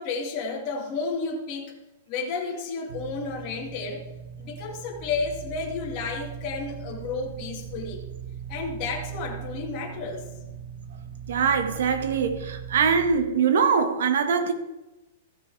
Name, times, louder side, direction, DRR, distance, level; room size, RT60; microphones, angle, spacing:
voice 1, 0.0-1.7 2.1-4.1 4.4-8.0 8.5-10.3, left 4 dB, 30° left, -1 dB, 2.2 m, -32 dB
sound 1, 2.9-13.1, right 8 dB, 55° right, 1.5 m, -39 dB
voice 2, 11.3-14.5, right 6 dB, 70° right, 7 dB, 1.7 m, -23 dB
15.0 x 6.0 x 4.8 m, 1.0 s
hypercardioid pair, 160°, 0 cm